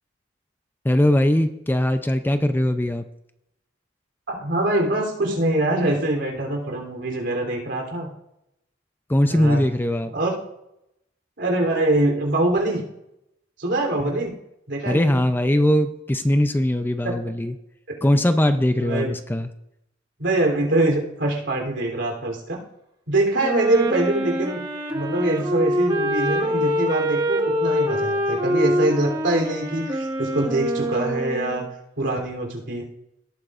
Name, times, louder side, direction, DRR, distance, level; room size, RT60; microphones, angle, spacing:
voice 1, 0.8-3.1 9.1-10.1 14.0-14.2 14.9-17.5 18.0-19.5, left 1 dB, 10° left, 9 dB, 0.5 m, -20 dB
voice 2, 4.3-8.1 9.3-9.6 10.1-10.3 11.4-12.8 13.6-14.4 14.7-15.2 17.0-17.3 18.0-18.2 18.7-19.1 20.2-22.6 23.1-24.6 24.9-31.6 32.0-32.8, right 1 dB, 70° right, 1 dB, 3.3 m, -24 dB
Wind instrument woodwind instrument, 23.4-31.7, equal, 25° right, 1.6 m, -25 dB
17.5 x 9.0 x 2.5 m, 0.82 s
head